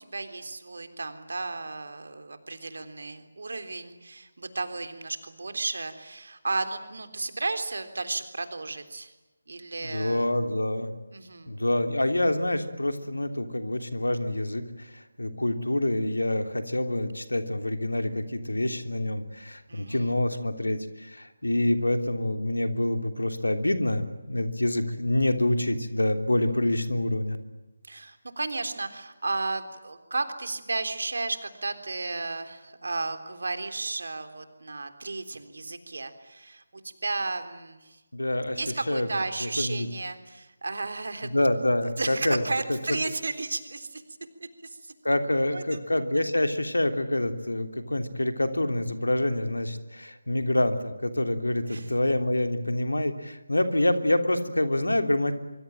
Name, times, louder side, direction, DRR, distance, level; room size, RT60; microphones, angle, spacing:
voice 1, 0.0-9.1 9.5-10.3 11.1-11.5 19.7-20.2 27.9-38.0 38.6-41.3 42.0-44.0 44.4-44.9 45.5-45.8 51.7-52.0, right 3 dB, 60° right, 9 dB, 3.6 m, -33 dB
voice 2, 9.8-10.9 11.5-14.6 14.9-27.4 38.1-38.6 38.9-39.1 39.4-39.9 41.2-42.4 45.0-55.3, left 1 dB, 80° left, 8 dB, 3.2 m, -26 dB
25.0 x 24.5 x 9.1 m, 1.0 s
figure-of-eight pair, 155°, 0 cm